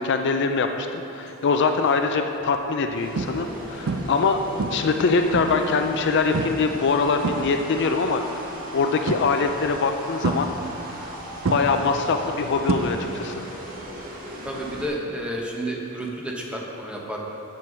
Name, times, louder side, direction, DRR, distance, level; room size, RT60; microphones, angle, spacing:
voice 1, 0.0-4.4 4.7-8.4 8.7-10.5 10.9-11.1 11.5-13.4, left 4 dB, 55° left, 6 dB, 0.4 m, -23 dB
sound 1, 1.5-1.8 2.4-2.6 3.2-3.6 3.9-4.3 4.6-5.7 6.3-6.7 7.0-7.9 9.1-9.6 10.2-11.1 11.4-13.3 13.6-14.0 16.1-16.2, right 3 dB, 65° right, 0.5 m, -28 dB
sound 2, 2.9-14.9, right 1 dB, 40° right, 1.3 m, -38 dB
Bass guitar, 4.5-8.9, left 5 dB, 80° left, 0.8 m, -43 dB
voice 2, 14.4-17.2, right 1 dB, 5° right, -2 dB, 1.1 m, -31 dB
7.6 x 7.1 x 6.1 m, 2.9 s
head